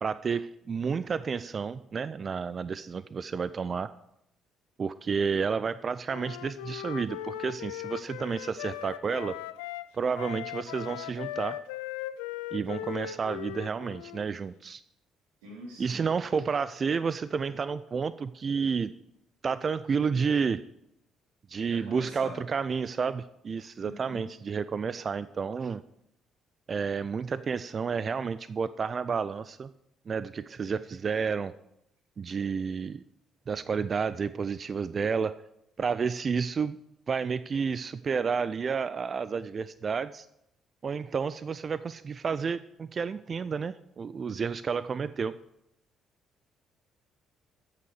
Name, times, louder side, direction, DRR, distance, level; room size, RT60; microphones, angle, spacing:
voice 1, 0.0-3.9 4.8-9.4 9.9-11.6 12.5-14.8 15.8-18.9 19.4-20.6 21.5-25.8 26.7-29.7 30.1-31.5 32.2-33.0 33.5-35.3 35.8-36.8 37.1-40.3 40.8-45.4, right 5 dB, 45° right, 15 dB, 0.3 m, -30 dB
Wind instrument woodwind instrument, 6.1-9.9 10.1-14.3, left 14 dB, 80° left, 0.3 m, -39 dB
voice 2, 15.4-16.1 21.6-22.4 23.8-24.3, equal, 80° right, -2 dB, 3.2 m, -45 dB
13.5 x 5.9 x 4.8 m, 0.80 s
hypercardioid pair, 50°, 0 cm